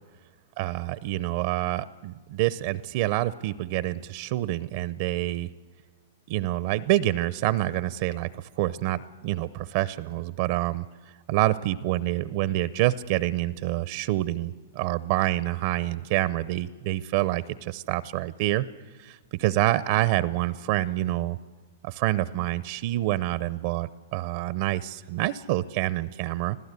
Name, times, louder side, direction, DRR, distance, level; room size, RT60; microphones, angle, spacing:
voice 1, 0.6-5.5 6.3-10.8 11.3-18.7 19.0-21.4 21.8-26.6, right 15 dB, 55° right, 18 dB, 0.6 m, -27 dB
25.5 x 15.5 x 8.2 m, 1.4 s
hypercardioid pair, 125°, 0 cm